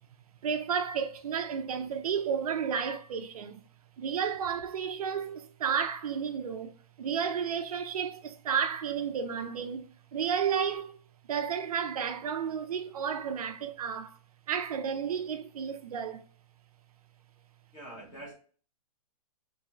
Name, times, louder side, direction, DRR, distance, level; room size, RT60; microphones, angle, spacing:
voice 1, 0.4-3.6 4.0-10.9 11.3-14.2 14.5-16.2, right 7 dB, 70° right, 0.5 m, -32 dB
voice 2, 17.7-18.3, right 1 dB, 20° left, 1.6 m, -44 dB
3.6 x 3.2 x 2.9 m
hypercardioid pair, 160°, 20 cm